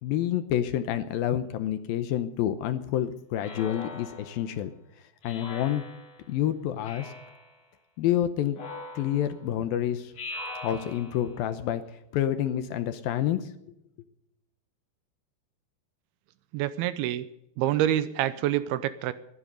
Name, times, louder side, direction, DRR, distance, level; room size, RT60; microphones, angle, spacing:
voice 1, 0.0-4.7 5.2-5.8 6.3-7.1 8.0-8.6 9.0-10.1 10.6-11.8 12.1-13.5, left 11 dB, 75° left, 11 dB, 2.4 m, -28 dB
Speech synthesizer, 3.4-4.5 5.2-6.3 6.8-7.5 8.5-9.4 10.1-11.3, left 2 dB, 45° left, 3.2 m, -41 dB
voice 2, 16.5-17.3 17.6-19.1, right 12 dB, 80° right, 14 dB, 2.5 m, -27 dB
22.0 x 10.0 x 5.2 m, 0.82 s
omnidirectional pair, 4.7 m